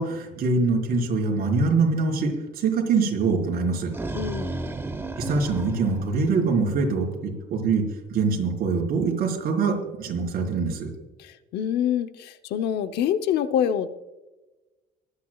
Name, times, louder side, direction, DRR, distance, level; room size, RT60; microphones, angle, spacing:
voice 1, 0.0-3.9 5.3-7.8 8.1-10.9, right 4 dB, 60° right, 0 dB, 4.6 m, -24 dB
sound 1, 3.6-6.8, right 2 dB, 15° right, 1.0 m, -33 dB
voice 2, 4.1-4.6 11.2-13.9, left 9 dB, 75° left, 10 dB, 0.9 m, -26 dB
24.5 x 9.7 x 2.4 m, 1.1 s
cardioid pair, 110°, 17 cm